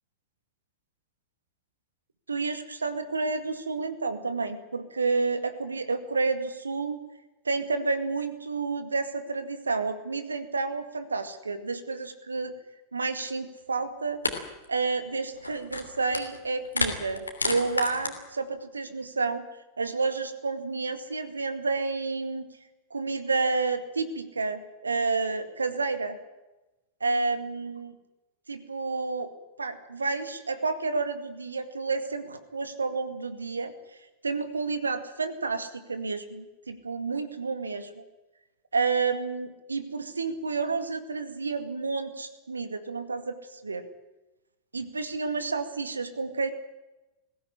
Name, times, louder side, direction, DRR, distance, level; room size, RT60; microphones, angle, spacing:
voice 1, 2.3-7.0 7.5-12.5 12.9-14.2 14.7-19.4 19.8-22.5 22.9-26.2 27.0-27.9 28.5-29.3 29.6-33.7 34.2-38.0 38.7-43.9 44.7-46.5, right 4 dB, 75° right, 10 dB, 2.1 m, -30 dB
sound 1, 13.6-13.7 14.2-14.4 14.6-14.9 15.3-16.4 16.6-18.1, left 3 dB, 80° left, 3.0 m, -30 dB
21.0 x 17.0 x 9.9 m, 1.0 s
figure-of-eight pair, 90°, 0 cm